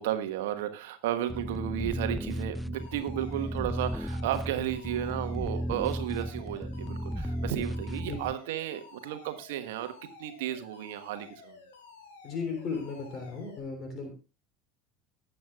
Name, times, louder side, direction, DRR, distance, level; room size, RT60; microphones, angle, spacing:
voice 1, 0.0-11.6, right 12 dB, 70° right, 1.3 m, -33 dB
sound 1, 1.3-8.3, equal, ahead, 0.5 m, -35 dB
Alarm, 2.7-13.6, left 5 dB, 75° left, 3.3 m, -52 dB
voice 2, 12.2-14.1, left 4 dB, 45° left, 3.5 m, -35 dB
19.5 x 7.9 x 2.4 m
figure-of-eight pair, 70°, 0 cm